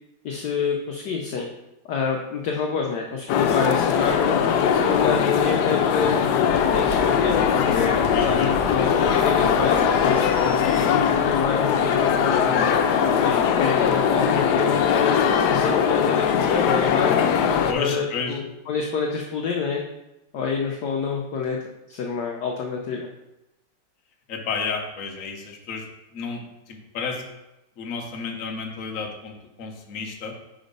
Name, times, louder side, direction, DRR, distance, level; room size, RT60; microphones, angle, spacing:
voice 1, 0.2-1.5 1.9-4.4 4.7-6.2 6.7-12.7 13.2-15.1 15.5-17.1 17.8-19.8 20.3-21.6 21.9-23.1, left 5 dB, 70° left, 1 dB, 1.1 m, -27 dB
sound 1, 3.3-17.7, left 7 dB, 90° left, 0.8 m, -20 dB
sound 2, 6.4-11.7, right 2 dB, 80° right, 0.6 m, -37 dB
voice 2, 8.1-8.5 17.7-18.4 24.3-25.8 26.1-26.4 26.7-27.2 27.8-30.3, left 5 dB, 50° left, 2 dB, 1.1 m, -31 dB
5.1 x 4.9 x 5.2 m, 0.95 s
omnidirectional pair, 2.4 m